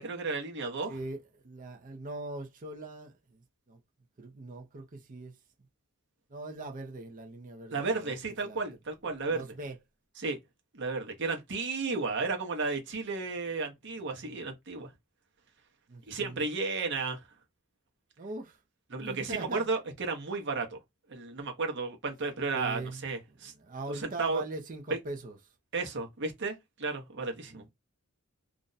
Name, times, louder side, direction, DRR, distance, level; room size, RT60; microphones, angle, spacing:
voice 1, 0.0-1.0 7.7-9.4 10.2-10.4 10.7-14.9 16.1-17.2 18.9-20.8 21.1-23.5 23.9-24.4 24.9-25.0 25.7-27.6, right 4 dB, 55° right, 0.9 m, -33 dB
voice 2, 0.6-3.8 4.2-5.4 6.3-8.2 8.4-8.6 9.3-9.8 14.2-14.4 15.9-16.5 18.2-18.6 19.0-19.7 22.5-25.4 27.5-27.7, right 2 dB, 35° right, 0.5 m, -41 dB
2.5 x 2.1 x 3.9 m
head